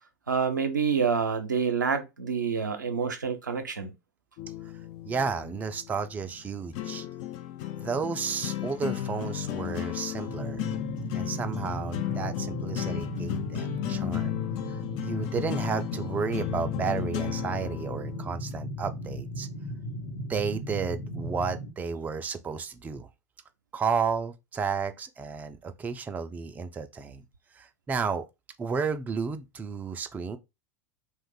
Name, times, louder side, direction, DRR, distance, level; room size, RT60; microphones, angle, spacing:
voice 1, 0.3-3.9, right 6 dB, 85° right, 0.6 m, -27 dB
sound 1, 4.4-18.3, left 13 dB, 45° left, 0.4 m, -35 dB
voice 2, 5.0-7.1 7.8-10.6 11.1-14.3 14.7-19.5 20.3-23.1 23.7-27.2 27.5-28.3 28.6-30.4, right 5 dB, 15° right, 0.4 m, -32 dB
sound 2, 10.3-21.7, equal, 65° left, 0.8 m, -36 dB
2.5 x 2.3 x 3.6 m
figure-of-eight pair, 85°, 10 cm